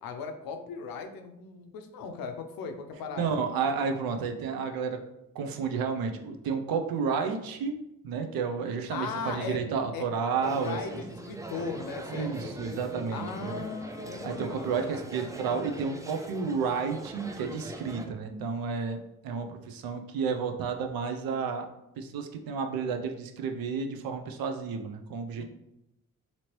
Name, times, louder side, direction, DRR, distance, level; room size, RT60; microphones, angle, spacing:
voice 1, 0.0-3.4 8.9-9.6 9.9-10.1 10.5-12.6 13.1-15.0 25.4-25.5, left 5 dB, 90° left, 6 dB, 0.5 m, -38 dB
voice 2, 3.1-5.0 5.3-7.7 8.0-11.0 12.1-13.6 14.2-21.7 22.0-25.4, right 5 dB, 90° right, 5 dB, 0.5 m, -31 dB
sound 1, 10.4-18.1, right 1 dB, 10° right, 0.4 m, -41 dB
2.9 x 2.8 x 2.9 m, 0.86 s
cardioid pair, 50°, 34 cm